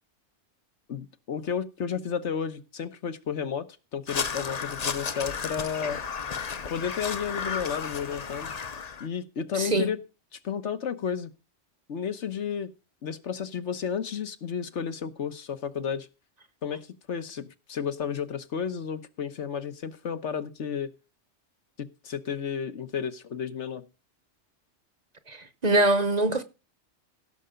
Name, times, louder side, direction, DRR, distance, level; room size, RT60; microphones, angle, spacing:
voice 1, 0.9-3.7 3.9-6.0 6.7-8.5 9.0-10.0 10.3-11.3 11.9-12.7 13.0-16.1 16.6-20.9 21.8-23.9, left 7 dB, 75° left, 1.4 m, -32 dB
Crow, 4.1-9.1, left 6 dB, 40° left, 0.8 m, -33 dB
voice 2, 9.5-9.9 25.3-26.4, right 2 dB, 40° right, 1.0 m, -23 dB
16.0 x 6.7 x 5.1 m
omnidirectional pair, 1.2 m